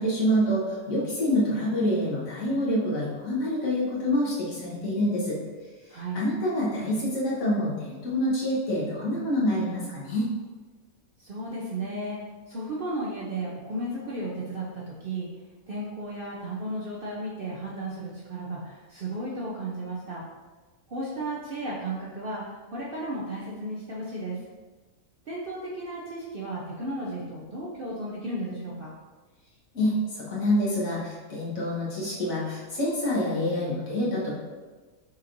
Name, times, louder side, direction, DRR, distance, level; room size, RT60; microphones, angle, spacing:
voice 1, 0.0-5.4 6.1-10.3 29.7-34.4, left 1 dB, 65° left, -6 dB, 1.6 m, -26 dB
voice 2, 11.2-12.2 12.5-15.3 15.7-20.3 20.9-24.4 25.3-28.9, right 1 dB, 55° right, -5 dB, 0.7 m, -34 dB
5.7 x 3.0 x 2.6 m, 1.3 s
omnidirectional pair, 1.5 m